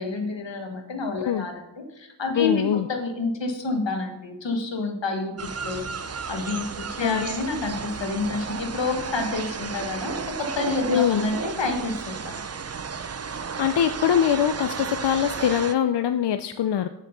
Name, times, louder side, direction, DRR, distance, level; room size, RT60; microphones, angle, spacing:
voice 1, 0.0-5.8 6.3-12.3, left 3 dB, 85° left, 4 dB, 1.3 m, -29 dB
voice 2, 2.4-2.9 7.0-7.2 10.9-11.3 13.3-16.9, left 9 dB, 70° left, 11 dB, 0.5 m, -23 dB
sound 1, 5.4-15.7, right 5 dB, 35° right, 0.5 m, -33 dB
8.3 x 6.1 x 5.5 m, 0.94 s
cardioid pair, 40°, 43 cm